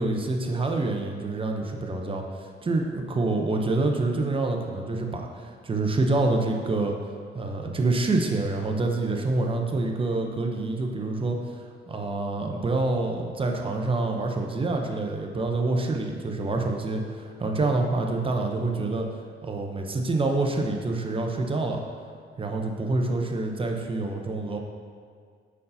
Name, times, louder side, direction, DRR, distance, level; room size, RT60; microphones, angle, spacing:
voice 1, 0.0-7.0 7.3-11.4 11.9-19.1 19.4-21.8 22.4-24.6, right 2 dB, 25° right, 2 dB, 0.7 m, -27 dB
6.4 x 5.5 x 2.7 m, 2.1 s
cardioid pair, 90°, 20 cm